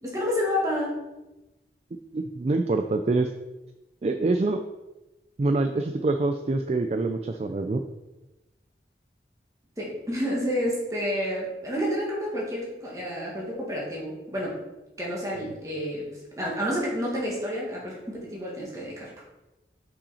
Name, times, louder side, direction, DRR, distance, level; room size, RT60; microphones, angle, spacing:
voice 1, 0.0-1.0 9.8-14.6 15.0-16.1 16.4-19.1, equal, 20° right, -4 dB, 1.8 m, -29 dB
voice 2, 2.1-3.3 4.0-4.6 5.4-7.8, right 2 dB, 35° right, 6 dB, 0.3 m, -25 dB
5.5 x 5.5 x 4.2 m, 1.0 s
head